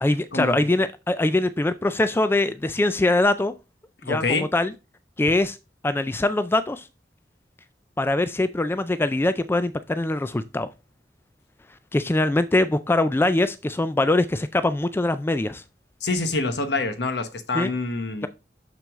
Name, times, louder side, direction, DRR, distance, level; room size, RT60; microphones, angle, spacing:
voice 1, 0.0-3.5 4.0-4.7 5.2-5.6 5.8-6.9 8.0-10.7 11.9-15.6 17.5-17.7, left 2 dB, 15° left, 0.3 m, -22 dB
voice 2, 4.0-4.5 16.0-18.3, left 3 dB, 70° left, 1.1 m, -26 dB
6.8 x 6.1 x 3.5 m
head